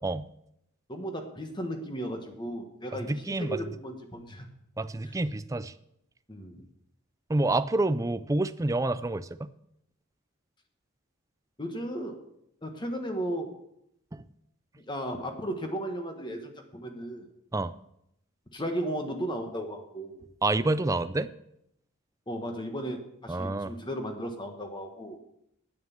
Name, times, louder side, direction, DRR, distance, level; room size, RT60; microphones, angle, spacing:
voice 1, 0.9-4.5 5.0-5.1 6.3-6.6 11.6-12.2 12.6-13.5 14.8-17.3 18.5-20.2 22.3-25.2, equal, 20° left, 5 dB, 1.4 m, -35 dB
voice 2, 3.1-3.6 4.8-5.7 7.3-9.5 14.1-14.2 17.5-17.7 20.4-21.3 23.3-23.7, right 2 dB, 15° right, 14 dB, 0.4 m, -28 dB
9.4 x 9.3 x 7.2 m, 0.78 s
head